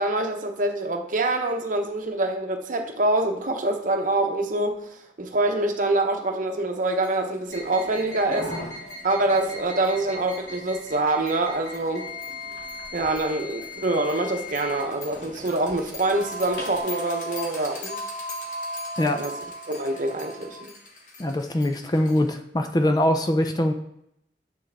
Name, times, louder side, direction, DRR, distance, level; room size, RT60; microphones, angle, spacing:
voice 1, 0.0-8.5 9.0-12.1 12.9-18.0 19.1-19.3 19.7-20.7, right 2 dB, 45° right, 4 dB, 0.8 m, -25 dB
sound 1, 7.0-7.1 7.5-7.6 8.0-8.1 8.4-22.3, equal, 45° left, 1.1 m, -39 dB
sound 2, 7.5-16.8, left 3 dB, 75° left, 2.3 m, -39 dB
voice 2, 21.2-23.7, left 1 dB, 20° left, 6 dB, 0.4 m, -23 dB
7.7 x 6.1 x 3.4 m, 0.76 s
head